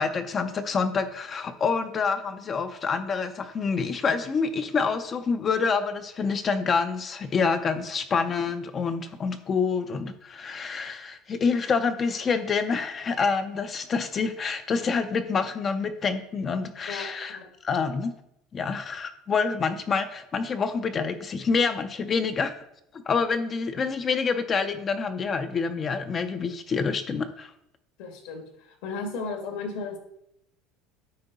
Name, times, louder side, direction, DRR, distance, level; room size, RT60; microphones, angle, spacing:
voice 1, 0.0-18.1 18.5-22.5 22.9-27.5, left 5 dB, 25° left, 9 dB, 0.4 m, -27 dB
voice 2, 16.9-17.5 28.0-30.0, left 4 dB, 75° left, 3 dB, 1.8 m, -35 dB
9.4 x 4.4 x 3.9 m, 0.78 s
cardioid pair, 160°, 0 cm